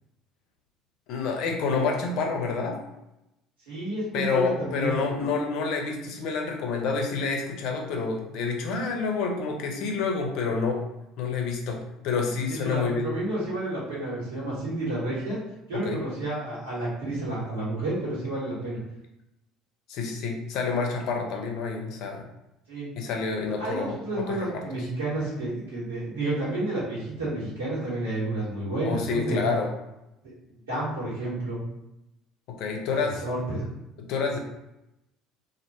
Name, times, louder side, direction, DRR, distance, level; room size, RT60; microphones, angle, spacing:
voice 1, 1.1-2.8 4.1-10.8 11.2-13.1 15.7-16.0 19.9-22.3 23.0-24.5 28.8-29.7 32.5-33.2 34.1-34.4, left 4 dB, 65° left, 2 dB, 0.5 m, -28 dB
voice 2, 3.7-5.0 12.6-15.4 15.7-18.8 22.7-22.9 23.6-29.4 30.2-30.3 30.7-31.6 33.0-33.7, right 2 dB, 85° right, -8 dB, 1.3 m, -30 dB
2.5 x 2.2 x 2.9 m, 0.90 s
hypercardioid pair, 60°, 0 cm